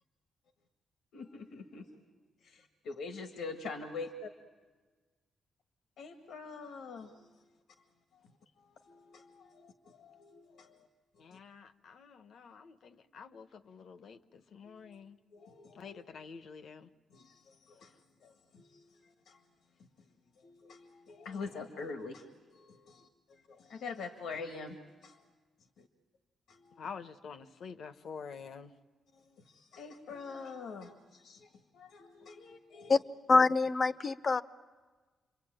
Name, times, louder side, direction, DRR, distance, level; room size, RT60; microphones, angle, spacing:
voice 1, 1.1-1.9 2.4-4.3 6.0-7.3 8.6-10.9 11.2-11.4 14.6-14.8 15.3-16.0 17.1-18.0 18.2-19.4 20.4-25.2 25.8-25.9 26.5-26.8 29.1-33.0, left 4 dB, 90° left, 1.7 m, -45 dB
voice 2, 11.2-15.2 15.7-16.9 26.8-28.7, left 6 dB, 70° left, 1.1 m, -48 dB
voice 3, 33.3-34.4, left 3 dB, 40° left, 0.8 m, -25 dB
28.5 x 23.0 x 9.1 m
cardioid pair, 80°, 0 cm